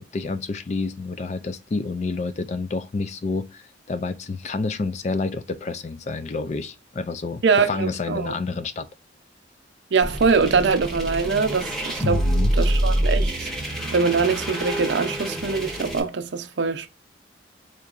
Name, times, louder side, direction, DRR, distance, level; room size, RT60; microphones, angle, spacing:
voice 1, 0.0-8.9 12.0-12.5, left 3 dB, 35° left, 0.3 m, -29 dB
voice 2, 7.4-8.3 9.9-12.2 12.5-13.5 13.9-16.9, right 5 dB, 65° right, 0.5 m, -23 dB
sound 1, 10.0-16.0, right 1 dB, ahead, 0.8 m, -26 dB
4.4 x 2.9 x 2.4 m
head